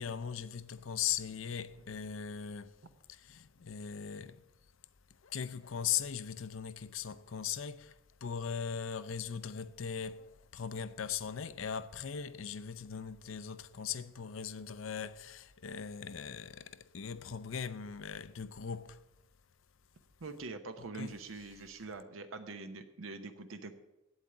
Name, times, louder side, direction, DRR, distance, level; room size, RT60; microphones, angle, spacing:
voice 1, 0.0-2.7 3.1-4.4 5.2-19.0 20.9-21.1, left 8 dB, 75° left, 0.6 m, -39 dB
voice 2, 20.2-23.7, right 3 dB, 85° right, 0.9 m, -44 dB
8.7 x 8.1 x 8.1 m
head